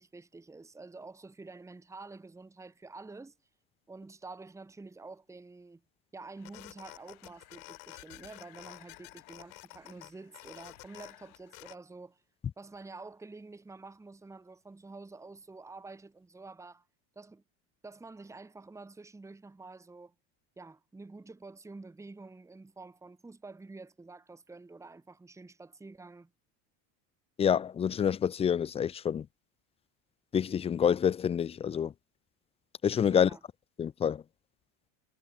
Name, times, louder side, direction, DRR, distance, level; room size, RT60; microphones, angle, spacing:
voice 1, 0.0-3.4 3.9-5.8 6.1-12.2 12.6-16.9 17.1-17.4 17.8-20.1 20.6-26.3 33.0-33.4, right 3 dB, 5° right, 1.6 m, -48 dB
sound 1, 6.4-11.8, left 36 dB, 80° left, 3.4 m, -51 dB
voice 2, 27.4-29.3 30.3-31.9 32.8-33.3 33.8-34.2, left 8 dB, 15° left, 0.4 m, -27 dB
cardioid pair, 155°, 42 cm